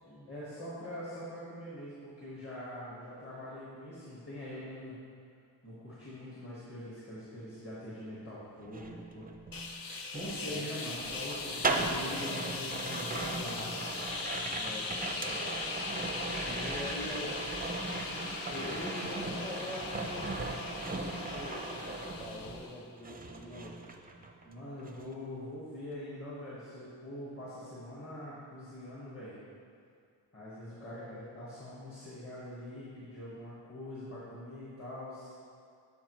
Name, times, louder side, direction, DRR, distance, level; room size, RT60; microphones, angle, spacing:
voice 1, 0.3-5.0 5.6-9.3 10.1-13.9 24.4-29.3 30.3-35.3, left 1 dB, 30° left, -9 dB, 1.6 m, -43 dB
sound 1, 8.6-22.7 23.0-24.5 24.8-25.1, right 2 dB, 20° right, 0.4 m, -38 dB
sound 2, 9.5-22.9, left 4 dB, 55° left, 0.6 m, -40 dB
voice 2, 10.2-10.7 14.6-15.4 16.4-17.4 18.5-23.8 30.8-31.3, left 2 dB, 15° left, -4 dB, 0.8 m, -44 dB
12.0 x 4.7 x 3.1 m, 2.2 s
wide cardioid pair, 110°, 41 cm